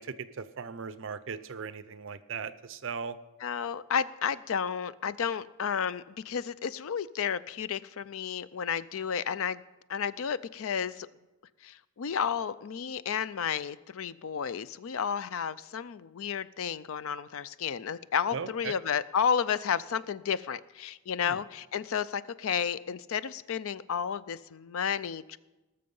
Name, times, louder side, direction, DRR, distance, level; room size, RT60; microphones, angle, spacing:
voice 1, 0.0-3.2 18.3-18.7 21.2-21.4, right 5 dB, 55° right, 14 dB, 0.6 m, -38 dB
voice 2, 3.4-9.6 9.9-11.1 11.6-25.4, left 7 dB, 70° left, 17 dB, 0.4 m, -32 dB
18.5 x 6.8 x 5.4 m, 1.1 s
head